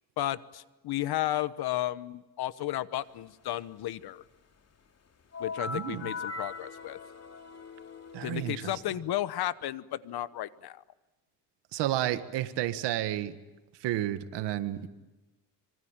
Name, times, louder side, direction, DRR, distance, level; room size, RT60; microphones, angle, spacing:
voice 1, 0.2-4.2 5.4-7.0 8.2-10.8, left 14 dB, 65° left, 15 dB, 1.2 m, -33 dB
sound 1, 5.3-8.9, left 4 dB, 40° left, 2.8 m, -40 dB
voice 2, 5.7-6.1 8.1-8.7 11.7-13.4 13.8-14.9, right 13 dB, 90° right, 11 dB, 1.7 m, -31 dB
26.0 x 24.0 x 8.9 m, 1.1 s
cardioid pair, 110°, 40 cm